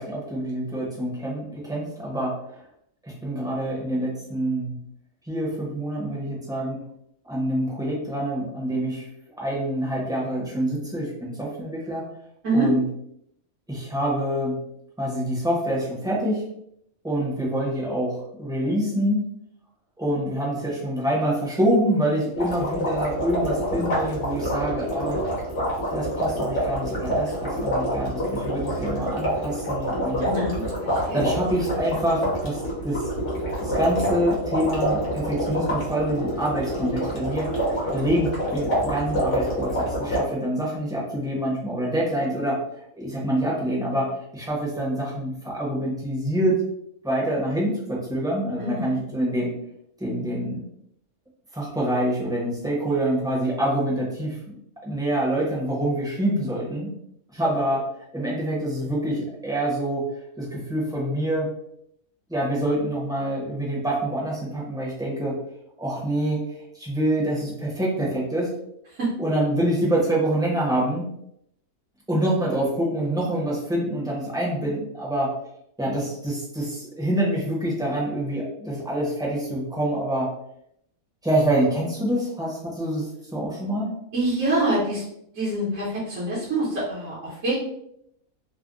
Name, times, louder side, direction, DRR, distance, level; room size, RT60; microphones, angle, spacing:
voice 1, 0.0-2.3 3.0-4.8 5.3-6.8 7.3-9.0 9.4-12.0 12.5-12.8 13.7-14.6 15.0-16.4 17.0-19.2 20.0-25.2 25.9-30.2 31.1-33.0 33.6-37.5 37.9-42.6 43.0-46.6 47.0-49.5 50.0-50.7 51.5-54.5 54.8-56.9 57.3-57.8 58.1-60.0 60.4-61.5 62.3-65.4 65.8-66.4 66.7-68.5 69.2-71.1 72.1-75.3 75.8-80.3 81.2-83.9, right 1 dB, 5° right, -5 dB, 0.6 m, -26 dB
sound 1, 22.4-40.2, equal, 60° left, 1.2 m, -27 dB
voice 2, 30.2-31.3 48.6-49.0 68.9-69.1 84.1-85.0 85.3-87.6, right 1 dB, 70° right, -8 dB, 1.3 m, -25 dB
3.3 x 2.1 x 2.5 m, 0.73 s
omnidirectional pair, 1.4 m